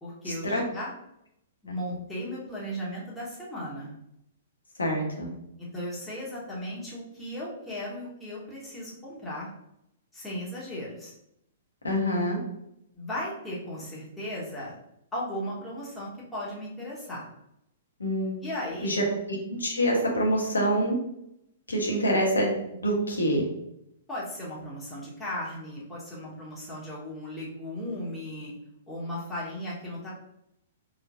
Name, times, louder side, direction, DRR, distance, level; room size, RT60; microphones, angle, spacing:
voice 1, 0.0-0.9 1.6-4.0 5.6-9.5 10.1-11.1 12.9-14.7 15.1-17.3 18.4-19.2 24.1-28.5 28.9-30.1, left 1 dB, 10° left, -7 dB, 1.3 m, -36 dB
voice 2, 4.8-5.3 11.8-12.4 18.0-18.4 18.8-21.0 21.7-23.5, equal, 80° left, -1 dB, 1.1 m, -26 dB
4.3 x 3.0 x 2.6 m, 0.79 s
figure-of-eight pair, 115°, 0 cm